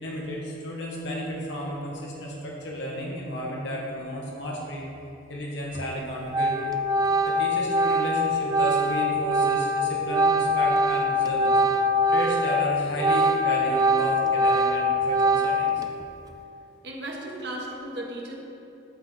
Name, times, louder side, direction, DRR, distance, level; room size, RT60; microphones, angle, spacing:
voice 1, 0.0-4.8 5.3-6.7 7.2-11.6 12.1-15.8, equal, 70° left, -3 dB, 1.4 m, -33 dB
Organ, 5.7-6.0 6.3-12.6 12.9-15.8, equal, 20° right, 0.3 m, -23 dB
voice 2, 16.8-18.3, right 1 dB, 55° right, -2 dB, 1.4 m, -35 dB
13.5 x 4.8 x 4.0 m, 2.9 s
head